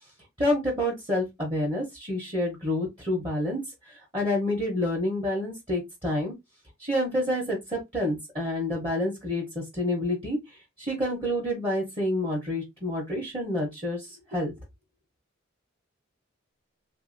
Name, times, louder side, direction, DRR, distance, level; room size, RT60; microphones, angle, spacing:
voice 1, 0.4-3.6 4.1-6.3 6.8-10.4 10.8-14.5, left 1 dB, 25° right, 0.9 m, -28 dB
3.2 x 2.6 x 2.5 m
head